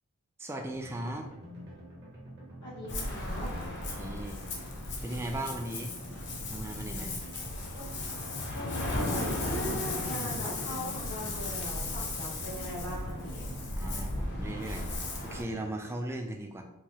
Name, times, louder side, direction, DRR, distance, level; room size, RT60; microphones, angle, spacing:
voice 1, 0.4-1.3 3.9-4.4 5.0-5.9 6.5-7.2 13.8-16.6, right 1 dB, 10° right, 3 dB, 0.3 m, -37 dB
sound 1, 0.7-15.7, equal, 45° right, 1.0 m, -46 dB
voice 2, 2.6-3.5 7.7-7.9 8.5-13.5, equal, 90° left, -7 dB, 1.3 m, -40 dB
Ocean, 2.9-15.4, left 2 dB, 50° left, 0.7 m, -36 dB
4.6 x 2.0 x 2.8 m, 0.88 s
head